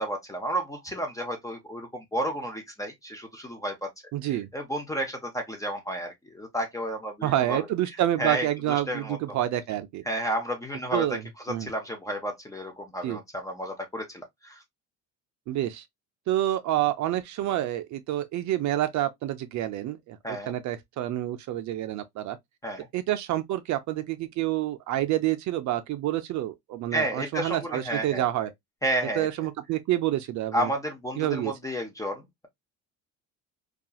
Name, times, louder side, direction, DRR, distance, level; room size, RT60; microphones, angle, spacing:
voice 1, 0.0-3.9 4.2-7.7 8.2-9.2 10.1-11.2 11.5-14.6 20.2-20.5 22.6-22.9 26.9-28.2 28.8-29.3 30.5-32.5, right 1 dB, 10° left, 0.5 m, -32 dB
voice 2, 4.1-4.5 7.2-10.0 10.9-11.2 11.5-11.7 13.0-13.2 15.5-15.8 16.3-22.4 22.9-28.5 29.2-30.7 31.2-31.5, right 13 dB, 50° right, 0.5 m, -28 dB
2.7 x 2.4 x 2.2 m
cardioid pair, 135°, 36 cm